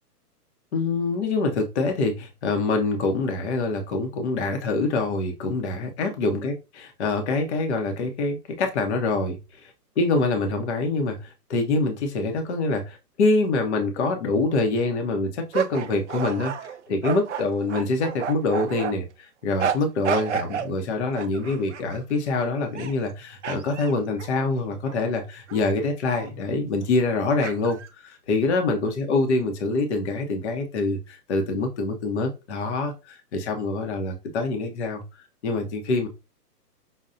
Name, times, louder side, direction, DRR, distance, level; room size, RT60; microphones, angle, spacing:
voice 1, 0.7-35.0 35.4-36.1, left 3 dB, 45° left, 0.8 m, -25 dB
sound 1, 15.5-18.9 19.6-20.7 21.2-22.0 22.6-23.1 23.4-25.0 25.5-25.6 26.1-26.3 27.4-27.9, right 7 dB, 50° right, 0.4 m, -31 dB
5.5 x 2.2 x 2.5 m
hypercardioid pair, 155°, 48 cm